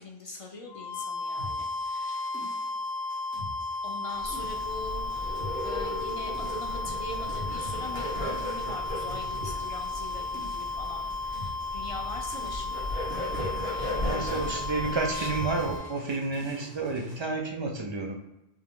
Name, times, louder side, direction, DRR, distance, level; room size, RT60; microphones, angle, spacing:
voice 1, 0.0-2.3 3.8-14.6 14.9-15.4, left 2 dB, 55° left, 1 dB, 0.4 m, -43 dB
sound 1, 0.7-16.0, left 3 dB, 85° left, 0.9 m, -34 dB
sound 2, 1.4-17.2, left 1 dB, 90° right, 2.0 m, -45 dB
Bird, 4.2-15.8, left 1 dB, 65° right, 1.3 m, -36 dB
voice 2, 13.8-18.1, right 3 dB, 45° right, 2 dB, 0.4 m, -31 dB
3.6 x 2.8 x 3.6 m, 0.92 s
omnidirectional pair, 1.1 m